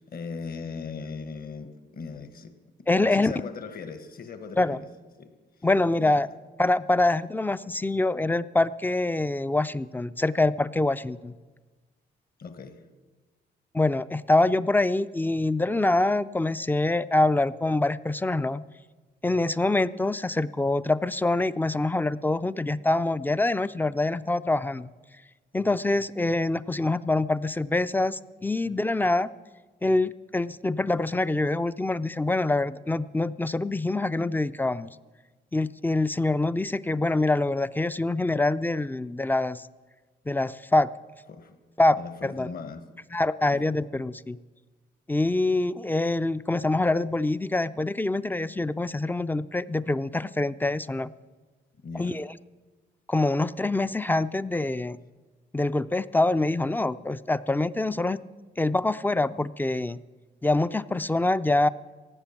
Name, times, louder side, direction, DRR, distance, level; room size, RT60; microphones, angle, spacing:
voice 1, 0.0-4.9 5.2-5.3 6.0-6.2 12.4-12.9 41.3-41.6 42.0-42.9 43.5-43.7 51.8-52.2, left 5 dB, 50° left, 9 dB, 1.4 m, -39 dB
voice 2, 2.9-3.3 4.6-4.8 5.6-6.3 6.6-11.4 13.7-18.6 19.2-24.9 25.5-29.3 29.8-35.0 35.5-39.7 40.3-40.9 41.8-42.5 43.1-44.4 45.1-51.1 52.0-52.3 53.1-55.0 55.5-58.2 58.6-60.0 60.4-61.7, left 2 dB, 10° left, 16 dB, 0.4 m, -25 dB
17.5 x 7.7 x 7.1 m, 1.3 s
cardioid pair, 90°, 20 cm